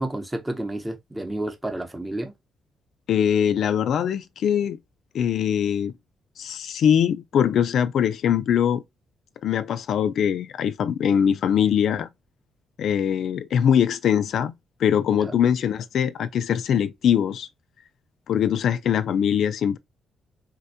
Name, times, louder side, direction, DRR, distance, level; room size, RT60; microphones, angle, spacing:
voice 1, 0.0-2.3 15.2-15.4, right 1 dB, 15° right, 0.8 m, -30 dB
voice 2, 3.1-4.8 5.1-5.9 6.4-8.8 9.4-12.1 12.8-14.5 14.8-17.5 18.3-19.8, left 8 dB, 70° left, 0.3 m, -22 dB
4.2 x 2.2 x 2.6 m
cardioid pair, 80°, 0 cm